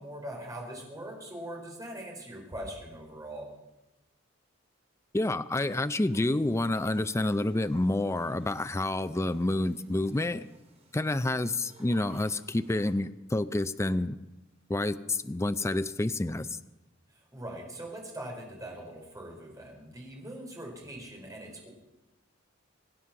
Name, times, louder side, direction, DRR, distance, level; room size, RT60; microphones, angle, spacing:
voice 1, 0.0-3.5 17.1-21.7, right 1 dB, 20° right, 0 dB, 4.2 m, -42 dB
voice 2, 5.1-10.5 10.9-14.2 14.7-16.6, left 2 dB, 15° left, 12 dB, 0.5 m, -28 dB
sound 1, 6.1-13.0, right 2 dB, 35° right, 3.9 m, -59 dB
24.5 x 9.8 x 5.9 m, 1.0 s
head